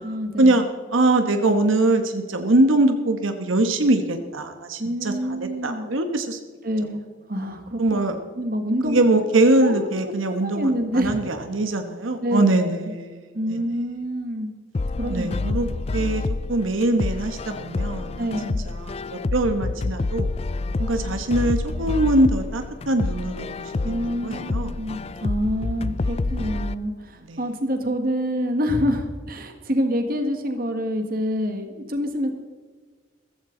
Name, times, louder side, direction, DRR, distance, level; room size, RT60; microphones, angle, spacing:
voice 1, 0.0-0.6 2.4-2.5 4.8-5.8 6.6-7.0 7.3-8.0 8.4-9.0 9.6-9.9 10.4-11.2 12.2-12.7 13.3-14.5 15.0-15.7 18.2-18.6 23.8-32.3, equal, 45° right, 6 dB, 1.6 m, -27 dB
voice 2, 0.9-5.1 5.4-6.4 7.8-8.2 8.8-13.2 13.5-13.6 15.1-15.7 15.9-16.2 16.5-18.3 18.7-20.3 20.8-23.7 24.2-24.8 25.8-26.1 27.3-27.4, right 2 dB, 90° right, 7 dB, 1.2 m, -22 dB
sound 1, 14.7-26.7, left 3 dB, 30° left, 0.3 m, -28 dB
15.0 x 15.0 x 3.9 m, 1.5 s
head